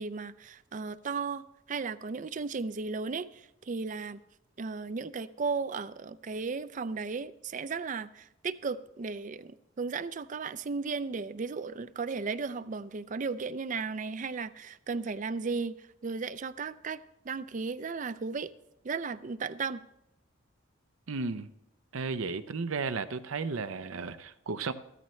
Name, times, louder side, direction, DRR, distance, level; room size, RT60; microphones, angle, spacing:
voice 1, 0.0-4.2 4.6-15.7 16.0-17.0 17.2-18.5 18.8-19.8, right 4 dB, 40° right, 15 dB, 0.4 m, -35 dB
voice 2, 21.1-21.5 21.9-24.7, right 4 dB, 90° right, 11 dB, 0.7 m, -34 dB
14.5 x 13.5 x 3.2 m, 0.86 s
head